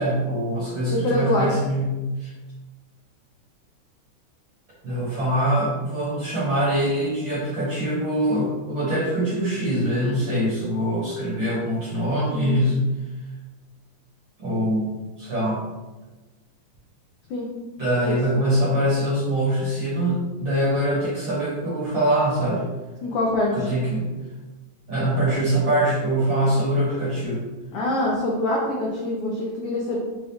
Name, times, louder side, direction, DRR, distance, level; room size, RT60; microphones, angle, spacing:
voice 1, 0.0-2.3 4.8-12.8 14.4-15.6 17.8-22.6 23.5-24.1 24.9-27.4, right 1 dB, 55° right, -8 dB, 1.4 m, -23 dB
voice 2, 0.9-1.5 12.3-12.6 17.3-17.5 18.0-18.2 23.0-23.6 27.7-30.0, left 2 dB, 85° left, -3 dB, 1.3 m, -24 dB
5.5 x 2.3 x 3.5 m, 1.2 s
omnidirectional pair, 3.4 m